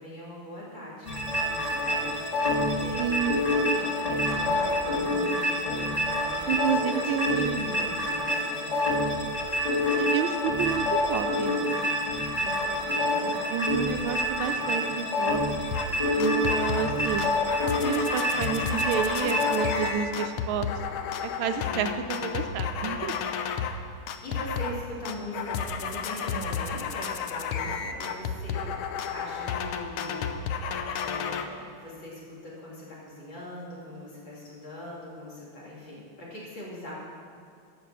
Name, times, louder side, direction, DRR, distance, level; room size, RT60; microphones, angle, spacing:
voice 1, 0.0-9.4 11.1-12.1 12.4-13.4 14.5-14.9 24.2-28.7 29.1-30.7 31.0-37.0, left 1 dB, 60° left, -6 dB, 3.5 m, -41 dB
sound 1, 1.0-19.9, left 1 dB, 20° left, 1.6 m, -27 dB
voice 2, 3.0-3.4 6.5-7.6 9.8-10.8 11.1-11.6 13.5-15.4 16.2-17.3 17.8-20.7 21.2-23.1, right 8 dB, 75° right, 8 dB, 1.3 m, -30 dB
sound 2, 15.7-15.9 16.2-16.9 17.2-23.8 24.1-24.8 25.1-31.5, left 6 dB, 75° left, 1.4 m, -32 dB
12.5 x 5.9 x 7.3 m, 2.3 s
omnidirectional pair, 2.4 m